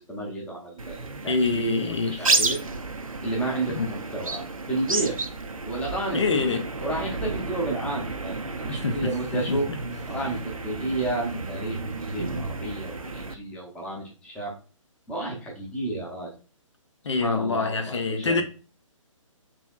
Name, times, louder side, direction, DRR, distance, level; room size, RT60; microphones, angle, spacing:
voice 1, 0.1-2.6 3.2-5.2 5.6-9.7 10.1-10.4 10.6-11.8 12.1-14.5 15.1-16.3 17.2-18.4, right 2 dB, 5° left, 0.8 m, -31 dB
sound 1, 0.8-13.3, right 3 dB, 85° right, 0.5 m, -31 dB
voice 2, 1.3-2.3 3.7-3.9 6.1-6.6 8.7-9.8 17.0-18.4, left 4 dB, 55° left, 0.5 m, -26 dB
4.1 x 2.9 x 2.2 m
figure-of-eight pair, 135°, 17 cm